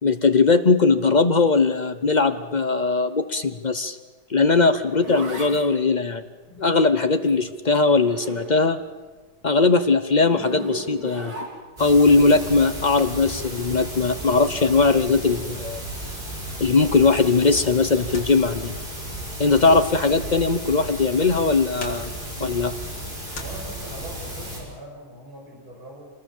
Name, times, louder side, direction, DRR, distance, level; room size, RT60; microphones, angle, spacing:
voice 1, 0.0-4.0 4.3-6.2 6.6-8.8 9.4-11.3 11.8-15.8 16.6-18.8 19.4-22.1 22.4-22.7, left 4 dB, 45° left, 9 dB, 0.5 m, -19 dB
Zipper (clothing), 4.4-8.9 9.2-11.9 13.5-13.8, right 1 dB, 70° right, 4.5 m, -37 dB
sound 1, 11.8-24.6, right 1 dB, 25° right, 6.3 m, -34 dB
sound 2, 17.9-24.2, left 3 dB, 75° left, 3.4 m, -44 dB
voice 2, 23.3-26.1, right 1 dB, 50° right, -2 dB, 6.9 m, -42 dB
26.0 x 21.0 x 7.2 m, 1.3 s
omnidirectional pair, 2.0 m